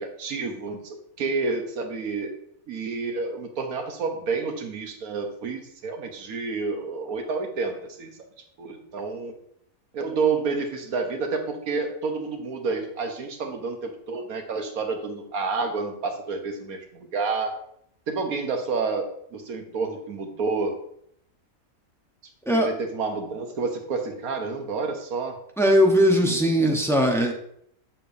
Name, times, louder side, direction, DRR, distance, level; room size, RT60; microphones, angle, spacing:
voice 1, 0.0-2.4 2.7-8.1 8.6-9.3 9.9-17.6 18.1-20.7 22.6-25.4, right 4 dB, 80° right, 4 dB, 1.5 m, -29 dB
voice 2, 25.6-27.3, equal, 5° left, 1 dB, 0.6 m, -19 dB
7.4 x 6.7 x 2.6 m, 0.69 s
omnidirectional pair, 1.5 m